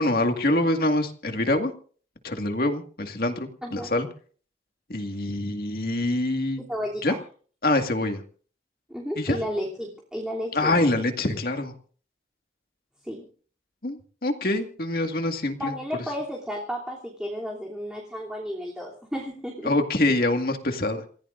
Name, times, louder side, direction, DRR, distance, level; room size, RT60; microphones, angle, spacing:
voice 1, 0.0-1.7 2.2-4.1 4.9-6.6 7.0-7.2 7.6-8.2 9.2-9.4 10.5-11.7 13.8-15.7 19.6-21.0, left 2 dB, 55° left, 5 dB, 2.0 m, -25 dB
voice 2, 6.7-7.2 8.9-10.8 13.0-13.3 15.6-19.7, equal, 5° right, -3 dB, 3.1 m, -33 dB
28.0 x 16.0 x 2.6 m, 0.43 s
head